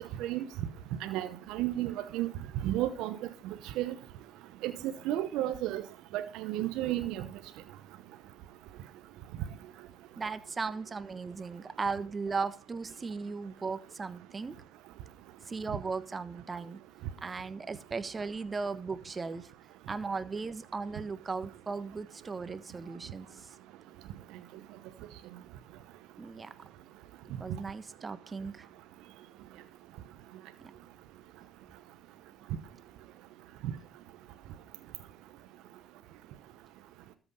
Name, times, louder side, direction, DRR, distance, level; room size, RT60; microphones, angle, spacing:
voice 1, 1.0-2.3 2.6-3.2 3.8-3.9 4.6-4.7 5.0-5.8 6.1-7.2, right 14 dB, 70° right, 0.8 m, -32 dB
voice 2, 10.2-14.6 15.5-16.8 17.2-19.5 19.9-23.5 26.2-26.5 27.4-28.7, right 4 dB, 30° right, 1.3 m, -37 dB
13.5 x 6.1 x 5.5 m
hypercardioid pair, 65°, 0 cm